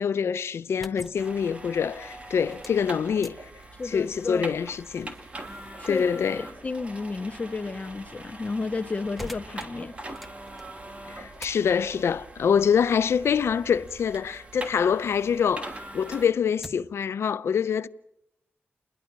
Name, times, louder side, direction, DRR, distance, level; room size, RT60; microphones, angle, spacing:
voice 1, 0.0-3.3 3.9-5.1 5.9-6.4 11.1-17.9, left 7 dB, 85° left, 0.8 m, -25 dB
sound 1, 0.6-15.3 15.7-17.1, equal, ahead, 1.3 m, -49 dB
sound 2, 1.2-16.3, right 2 dB, 30° right, 3.0 m, -43 dB
voice 2, 3.8-4.5 5.8-6.0 6.6-9.9, left 3 dB, 30° left, 0.9 m, -32 dB
29.5 x 21.5 x 6.1 m
wide cardioid pair, 150°, 4 cm